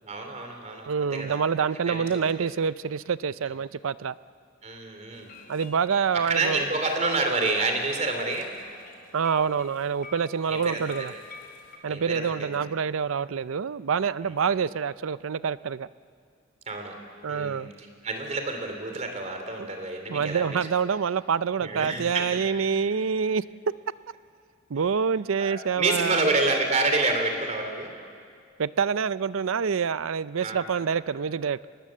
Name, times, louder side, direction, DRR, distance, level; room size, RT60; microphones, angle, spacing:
voice 1, 0.0-1.5 1.9-2.5 4.6-5.3 6.1-8.5 10.5-11.2 11.9-12.6 16.7-16.9 17.3-20.5 21.6-22.2 25.4-27.9 30.4-30.6, right 3 dB, 35° right, 5 dB, 3.0 m, -28 dB
voice 2, 0.9-4.1 5.5-6.6 9.1-11.1 11.8-15.9 17.2-17.7 19.6-19.7 20.1-23.4 24.7-26.3 28.6-31.7, right 6 dB, 80° right, 17 dB, 0.5 m, -26 dB
sound 1, 5.1-11.8, left 4 dB, 45° left, 3.1 m, -48 dB
24.5 x 20.0 x 7.5 m, 2.2 s
head